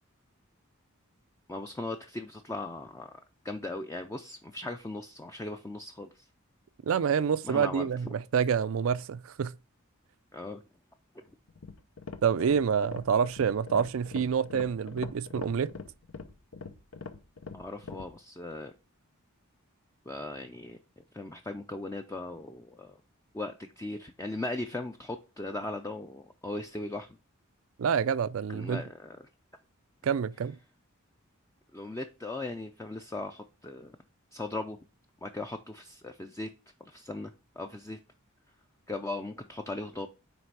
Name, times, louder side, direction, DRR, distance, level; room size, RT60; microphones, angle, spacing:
voice 1, 1.5-3.2 3.4-6.2 7.4-7.9 10.3-10.6 17.5-18.7 20.1-20.8 21.1-23.0 23.3-27.1 28.5-29.2 31.7-34.0 34.3-34.8 35.2-36.5 36.8-38.0 38.9-40.1, left 2 dB, 15° left, 0.4 m, -38 dB
voice 2, 6.9-9.5 12.2-15.7 27.8-28.8 30.0-30.6, right 7 dB, 70° right, 0.4 m, -27 dB
sound 1, 11.5-18.1, left 4 dB, 85° left, 0.8 m, -43 dB
9.4 x 3.3 x 4.7 m
head